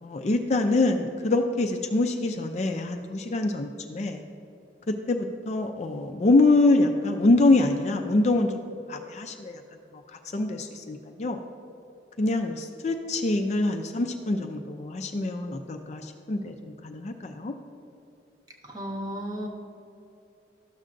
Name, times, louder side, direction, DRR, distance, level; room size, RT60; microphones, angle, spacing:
voice 1, 0.0-4.2 4.9-9.6 9.9-11.4 12.2-17.5, left 2 dB, 40° left, 4 dB, 0.4 m, -25 dB
voice 2, 18.6-19.5, equal, 20° right, 0 dB, 1.0 m, -34 dB
12.5 x 6.4 x 2.5 m, 2.7 s
head